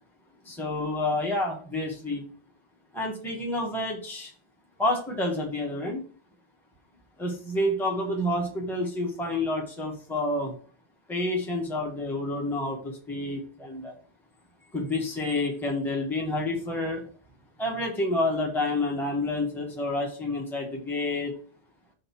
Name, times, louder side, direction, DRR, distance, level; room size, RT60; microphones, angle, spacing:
voice 1, 0.4-2.2 2.9-4.3 4.8-6.0 7.2-10.5 11.1-13.9 14.7-17.1 17.6-21.3, left 2 dB, ahead, 0 dB, 1.3 m, -29 dB
6.5 x 3.9 x 5.9 m, 0.43 s
omnidirectional pair, 1.1 m